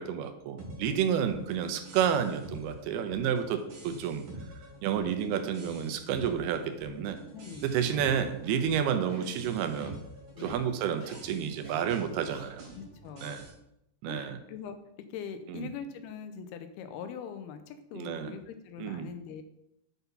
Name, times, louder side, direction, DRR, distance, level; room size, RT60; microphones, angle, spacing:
voice 1, 0.0-4.3 4.8-7.2 7.6-10.0 10.4-12.7 13.2-13.4 14.0-14.4 15.5-15.7 17.9-18.3 18.8-19.1, right 8 dB, 85° right, 8 dB, 2.6 m, -30 dB
sound 1, 0.6-13.5, right 1 dB, 55° right, 3.7 m, -47 dB
voice 2, 7.3-7.7 10.3-10.6 12.8-13.4 14.1-14.8 15.1-19.4, left 7 dB, 85° left, 9 dB, 2.6 m, -42 dB
sound 2, 7.8-8.1 8.5-8.7 9.1-9.4 9.7-9.9 10.4-10.5 11.0-11.2 11.6-11.8 12.3-12.4, right 1 dB, 25° right, 1.2 m, -48 dB
8.0 x 4.0 x 5.4 m, 0.81 s
omnidirectional pair, 4.6 m